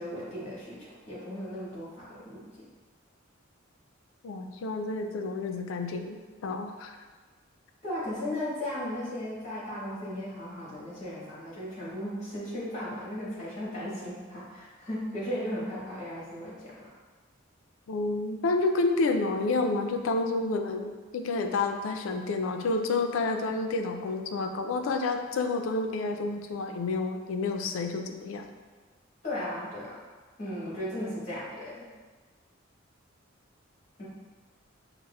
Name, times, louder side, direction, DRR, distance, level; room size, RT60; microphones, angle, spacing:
voice 1, 0.0-2.4 7.8-16.9 29.2-30.0 30.4-31.9 34.0-34.1, left 1 dB, 35° left, -8 dB, 1.4 m, -36 dB
voice 2, 4.2-7.0 17.9-28.5, left 3 dB, 80° left, 5 dB, 0.3 m, -29 dB
5.6 x 2.0 x 2.2 m, 1.4 s
head